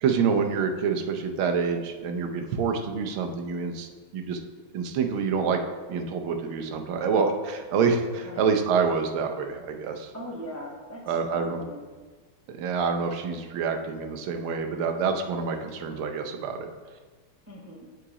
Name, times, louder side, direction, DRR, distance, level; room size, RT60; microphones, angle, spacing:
voice 1, 0.0-4.4 4.7-5.6 5.9-10.1 11.1-11.6 12.5-16.7, right 5 dB, 75° right, 4 dB, 1.5 m, -27 dB
voice 2, 10.1-11.9 17.5-17.9, equal, 25° right, -3 dB, 0.3 m, -40 dB
7.7 x 3.9 x 4.7 m, 1.4 s
omnidirectional pair, 2.4 m